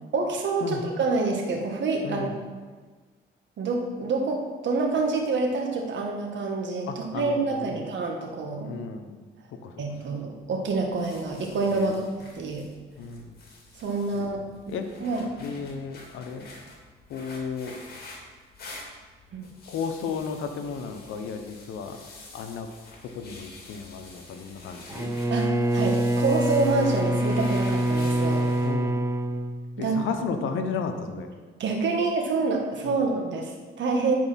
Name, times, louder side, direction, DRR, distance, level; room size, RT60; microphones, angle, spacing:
voice 1, 0.1-2.3 3.6-8.7 9.8-11.9 12.3-12.6 13.8-14.5 15.0-15.3 19.3-19.5 25.3-28.5 29.8-30.0 31.6-34.2, right 3 dB, 65° right, 1 dB, 1.7 m, -27 dB
voice 2, 2.0-2.4 6.9-7.8 8.6-9.2 9.5-9.8 11.7-12.0 13.0-13.4 14.1-14.9 15.4-16.5 17.1-17.8 19.7-22.0 22.3-22.7 23.0-25.1 28.6-29.0 29.8-31.3 32.8-33.0, left 5 dB, 80° left, 7 dB, 1.0 m, -34 dB
sound 1, 10.7-28.7, left 2 dB, 50° left, 2.3 m, -47 dB
Bowed string instrument, 24.9-30.2, right 1 dB, 15° right, 0.6 m, -25 dB
10.5 x 4.7 x 5.7 m, 1.4 s
cardioid pair, 90°, 20 cm